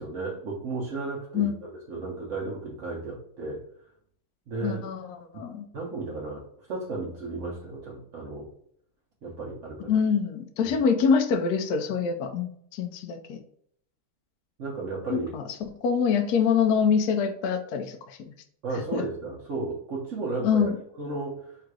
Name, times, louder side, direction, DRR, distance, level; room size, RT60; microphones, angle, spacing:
voice 1, 0.0-3.6 4.5-4.8 5.3-5.4 5.7-8.5 9.2-10.0 10.6-10.8 14.6-15.3 18.6-21.6, right 3 dB, 60° right, -4 dB, 0.8 m, -34 dB
voice 2, 4.6-5.7 9.9-13.4 15.1-18.3 18.9-19.0 20.4-20.7, left 6 dB, 85° left, 6 dB, 0.8 m, -25 dB
3.7 x 2.5 x 4.6 m, 0.66 s
omnidirectional pair, 2.3 m